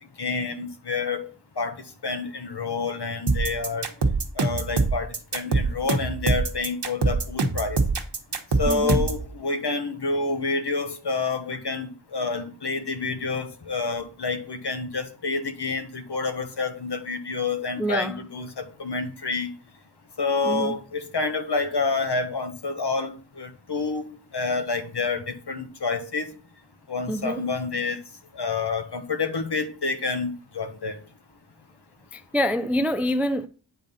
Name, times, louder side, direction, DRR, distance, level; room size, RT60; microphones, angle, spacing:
voice 1, 0.2-1.3 1.6-1.7 2.0-3.9 4.4-7.8 8.6-19.5 20.2-26.3 26.9-28.0 28.3-31.0, left 4 dB, 55° left, 1.2 m, -28 dB
sound 1, 3.3-9.2, right 3 dB, 55° right, 1.2 m, -23 dB
voice 2, 8.7-9.0 17.8-18.2 20.4-20.7 27.1-27.4 32.1-33.5, equal, 5° right, 0.4 m, -26 dB
9.2 x 3.9 x 5.4 m
wide cardioid pair, 75°, 49 cm